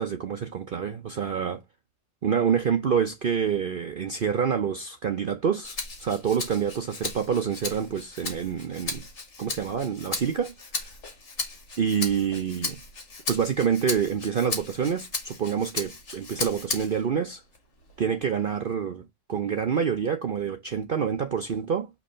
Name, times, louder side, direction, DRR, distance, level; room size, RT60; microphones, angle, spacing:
voice 1, 0.0-1.6 2.2-9.0 9.4-10.8 11.8-12.8 13.3-17.4 18.0-21.9, right 7 dB, 85° right, 0.4 m, -27 dB
Rattle (instrument), 5.6-17.1 17.5-18.7, left 3 dB, 45° left, 1.7 m, -36 dB
6.9 x 3.0 x 5.5 m
omnidirectional pair, 1.7 m